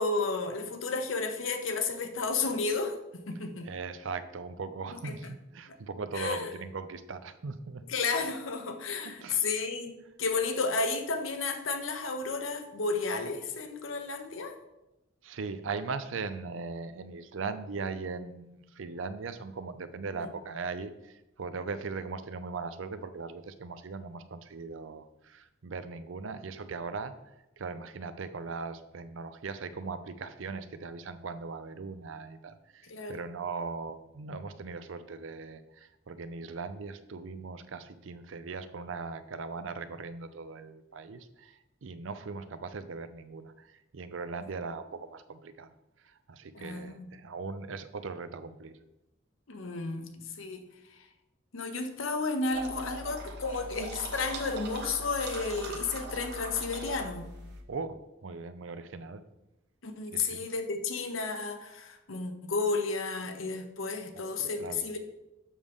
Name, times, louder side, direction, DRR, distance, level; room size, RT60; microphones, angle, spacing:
voice 1, 0.0-3.7 5.0-5.3 5.7-5.8 6.1-6.5 7.9-9.9 10.2-14.6 20.2-20.3 32.8-33.1 46.5-47.1 49.5-50.6 51.5-57.3 59.8-65.0, left 4 dB, 80° left, 7 dB, 0.9 m, -32 dB
voice 2, 3.6-7.8 9.2-9.4 15.2-45.7 46.0-48.7 57.7-58.0 58.2-59.2 60.1-60.4 64.4-64.8, right 4 dB, 75° right, 12 dB, 0.5 m, -39 dB
sound 1, 52.5-57.6, right 2 dB, 60° right, 1.1 m, -40 dB
7.2 x 6.3 x 3.6 m, 0.95 s
head